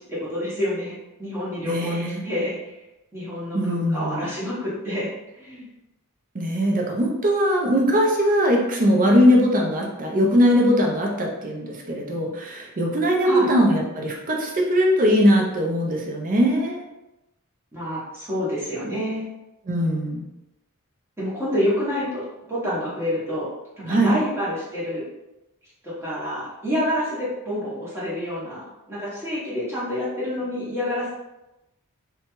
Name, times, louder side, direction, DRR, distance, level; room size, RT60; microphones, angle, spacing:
voice 1, 0.0-2.7 3.1-5.7 13.2-13.5 17.7-19.2 21.2-22.2 22.5-23.5 23.8-25.0 25.8-31.1, left 1 dB, 10° right, -9 dB, 0.9 m, -28 dB
voice 2, 1.6-2.2 3.5-4.3 6.3-16.8 19.7-20.2 23.8-24.2, equal, 40° right, 0 dB, 0.6 m, -20 dB
2.8 x 2.2 x 2.9 m, 0.96 s
head